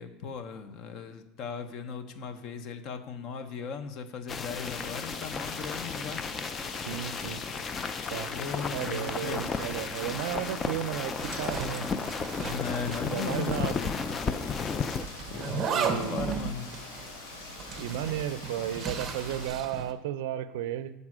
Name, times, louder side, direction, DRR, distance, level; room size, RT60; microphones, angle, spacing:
voice 1, 0.0-6.2 8.3-9.4 12.5-13.8 15.3-16.7, left 5 dB, 45° left, 9 dB, 0.8 m, -37 dB
sound 1, 4.3-15.1, left 5 dB, 20° left, 0.3 m, -34 dB
Rain, 4.6-19.5, left 3 dB, 75° left, 3.2 m, -45 dB
voice 2, 6.9-7.4 8.1-8.3 8.7-11.9 13.1-13.8 15.7-16.3 17.8-20.9, right 11 dB, 75° right, 13 dB, 0.4 m, -34 dB
Zipper (clothing), 11.2-13.7 14.0-14.1 15.0-19.9, right 6 dB, 25° right, 0.6 m, -35 dB
7.4 x 5.4 x 6.0 m, 0.94 s
supercardioid pair, 160°, 0 cm